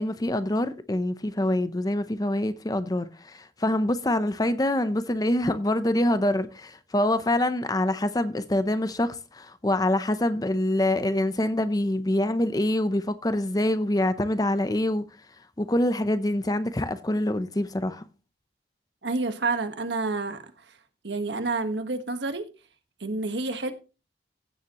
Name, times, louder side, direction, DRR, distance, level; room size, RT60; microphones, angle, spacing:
voice 1, 0.0-15.1 15.6-18.1, left 1 dB, 20° left, 0.7 m, -25 dB
voice 2, 19.0-20.4 21.0-22.4 23.0-23.7, right 3 dB, 75° right, 1.4 m, -28 dB
15.5 x 7.1 x 3.0 m
head